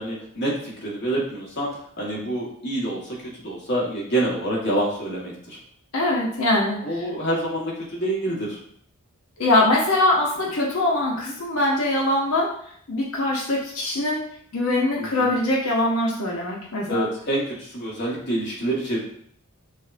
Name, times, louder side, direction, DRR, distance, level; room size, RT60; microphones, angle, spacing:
voice 1, 0.0-1.7 2.0-5.6 6.8-8.6 15.0-15.3 16.9-19.0, right 1 dB, 50° left, -4 dB, 1.3 m, -27 dB
voice 2, 5.9-7.0 9.4-12.5 12.9-14.2 14.5-17.1, left 1 dB, 75° left, -3 dB, 0.8 m, -22 dB
6.2 x 2.2 x 2.5 m, 0.62 s
head